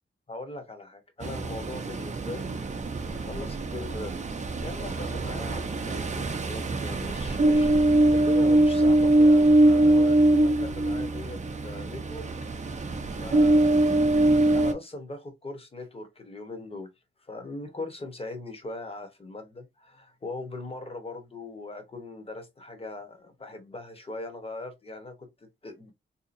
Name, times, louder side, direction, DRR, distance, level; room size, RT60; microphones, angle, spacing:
voice 1, 0.3-2.6 3.1-4.2 4.6-12.3 12.5-16.9 17.2-25.9, left 2 dB, 30° left, 1.0 m, -40 dB
Ocean, 1.2-14.7, right 1 dB, 35° right, 0.5 m, -23 dB
3.7 x 2.8 x 2.5 m
wide cardioid pair, 160°, 21 cm